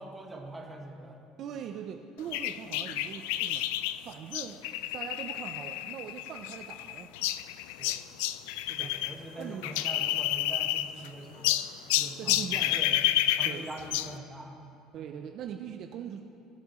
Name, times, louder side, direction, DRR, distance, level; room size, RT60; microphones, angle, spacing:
voice 1, 0.0-1.2 7.7-8.0 8.7-11.6 11.9-13.0 13.3-14.8, right 2 dB, 15° right, 0 dB, 1.6 m, -44 dB
voice 2, 1.4-3.7 3.9-7.1 8.7-9.0 9.4-9.7 12.2-12.8 13.5-13.7 14.9-16.2, right 8 dB, 55° right, 5 dB, 0.5 m, -41 dB
sound 1, 2.3-9.1 9.4-11.1 11.4-14.2, left 14 dB, 90° left, 0.3 m, -30 dB
19.5 x 7.2 x 3.1 m, 2.6 s
supercardioid pair, 105°, 0 cm